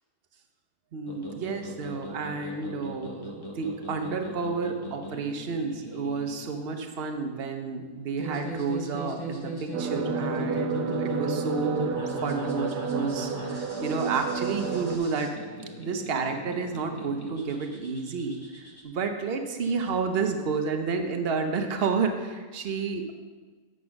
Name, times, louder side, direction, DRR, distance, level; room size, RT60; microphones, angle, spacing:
voice 1, 0.9-11.9 12.2-15.3 15.8-18.4 18.8-23.1, right 4 dB, 45° right, 5 dB, 0.9 m, -30 dB
sound 1, 1.1-18.8, left 1 dB, 15° left, 1.0 m, -38 dB
sound 2, 9.7-15.0, right 6 dB, 80° right, 1.3 m, -31 dB
8.7 x 6.1 x 5.9 m, 1.5 s
omnidirectional pair, 1.7 m